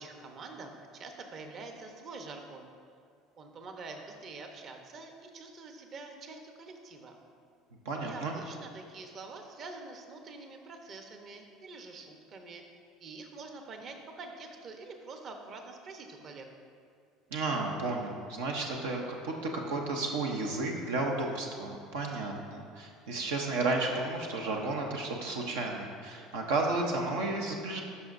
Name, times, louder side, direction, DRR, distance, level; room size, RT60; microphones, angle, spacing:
voice 1, 0.0-2.7 3.4-7.2 8.0-12.6 13.0-16.5, right 3 dB, 50° right, 4 dB, 0.9 m, -46 dB
voice 2, 7.9-8.3 17.3-19.3 19.7-27.8, right 3 dB, 85° right, 0 dB, 0.7 m, -32 dB
12.5 x 5.4 x 2.6 m, 2.3 s
hypercardioid pair, 80°, 0 cm